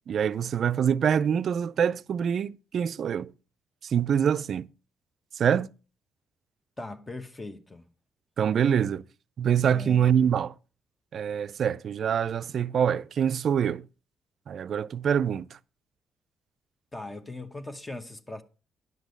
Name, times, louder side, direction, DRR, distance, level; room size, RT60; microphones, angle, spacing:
voice 1, 0.1-3.3 3.9-4.7 5.4-5.7 8.4-9.0 9.4-10.5 11.1-13.8 14.5-15.5, right 8 dB, 60° right, 0.4 m, -25 dB
voice 2, 6.8-7.9 9.7-10.2 16.9-18.4, left 2 dB, 20° left, 0.9 m, -39 dB
10.5 x 6.1 x 5.2 m
cardioid pair, 90°, 0 cm